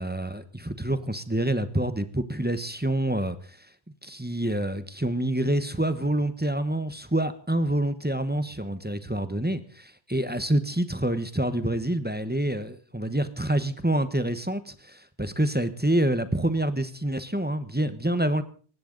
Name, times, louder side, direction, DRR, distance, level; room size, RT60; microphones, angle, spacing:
voice 1, 0.0-3.7 4.0-18.4, right 1 dB, 10° right, 1.0 m, -27 dB
19.0 x 16.5 x 3.9 m
omnidirectional pair, 1.1 m